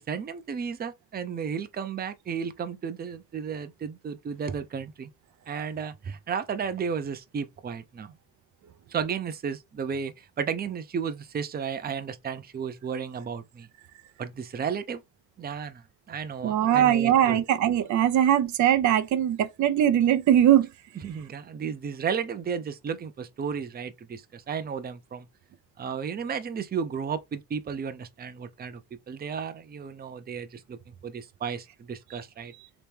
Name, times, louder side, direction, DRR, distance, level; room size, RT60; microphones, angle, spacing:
voice 1, 0.0-5.1 5.5-8.1 8.9-13.7 14.2-15.0 15.4-17.4 21.0-25.3 25.8-28.8 29.1-32.5, right 6 dB, 30° right, 0.6 m, -33 dB
voice 2, 16.4-20.7, right 10 dB, 70° right, 0.6 m, -21 dB
3.2 x 3.0 x 3.4 m
cardioid pair, 90°, 30 cm